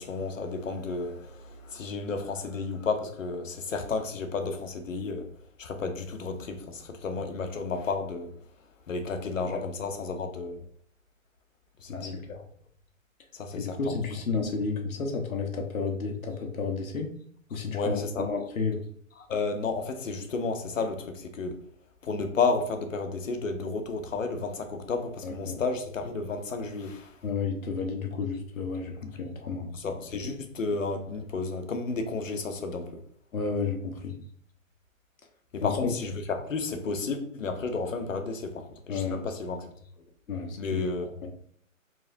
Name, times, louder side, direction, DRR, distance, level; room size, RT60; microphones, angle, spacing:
voice 1, 0.0-5.3 5.6-8.3 8.9-10.6 11.8-12.2 13.3-14.0 17.7-18.3 19.2-21.6 22.0-27.2 29.7-33.0 35.5-39.7 40.6-41.1, left 4 dB, 70° left, 0.9 m, -32 dB
voice 2, 11.9-12.4 13.5-17.1 17.5-18.8 25.2-25.6 27.2-29.8 33.3-34.2 35.6-35.9 38.9-39.2 40.3-40.8 41.2-41.3, left 4 dB, 90° left, 1.3 m, -32 dB
4.7 x 3.2 x 2.7 m
hypercardioid pair, 170°, 41 cm